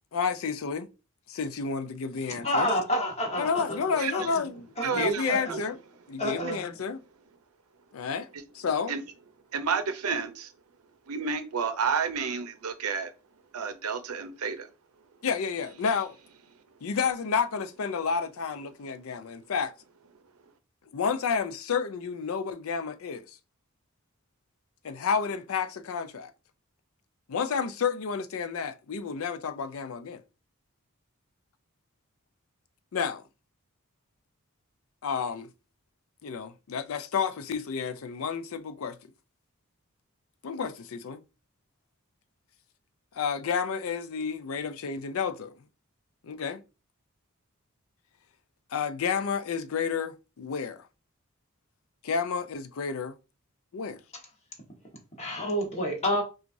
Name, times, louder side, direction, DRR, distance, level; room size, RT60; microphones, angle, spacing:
voice 1, 0.1-0.9 1.3-2.7 3.4-5.8 6.1-7.0 7.9-8.3 8.5-8.9 15.2-16.2 16.8-19.7 20.9-23.4 24.8-26.3 27.3-30.2 32.9-33.2 35.0-35.5 36.2-39.0 40.4-41.2 43.1-45.5 46.2-46.6 48.7-50.9 52.0-53.1 53.7-54.0, left 6 dB, 70° left, 0.4 m, -30 dB
voice 2, 2.4-3.6 4.1-4.2 4.8-5.6 6.2-6.6 55.2-56.2, equal, 30° left, 1.2 m, -28 dB
voice 3, 4.8-5.6 8.9-9.0 9.5-10.5 11.1-13.1 13.5-14.7, right 5 dB, 85° right, 0.6 m, -30 dB
5.9 x 2.4 x 2.6 m
head